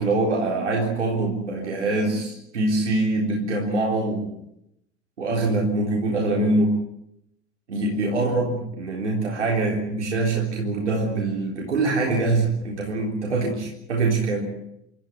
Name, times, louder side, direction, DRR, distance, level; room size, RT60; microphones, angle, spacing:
voice 1, 0.0-4.4 5.2-6.7 7.7-14.5, right 2 dB, 85° right, -2 dB, 3.9 m, -24 dB
27.5 x 13.5 x 9.9 m, 0.79 s
figure-of-eight pair, 65°, 34 cm